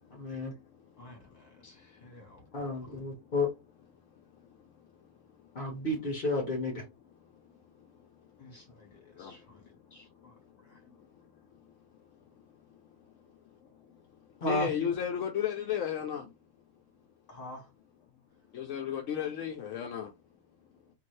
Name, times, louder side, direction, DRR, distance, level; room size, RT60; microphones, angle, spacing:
voice 1, 0.1-0.5 2.5-3.5 5.5-6.8 14.4-14.7, left 2 dB, 50° left, 0.9 m, -31 dB
voice 2, 1.0-2.5 2.8-2.9 8.4-10.8 17.3-17.7, left 1 dB, 30° left, 1.4 m, -52 dB
voice 3, 14.5-16.2 18.5-20.1, left 9 dB, 70° left, 0.9 m, -33 dB
2.7 x 2.6 x 3.1 m
omnidirectional pair, 1.4 m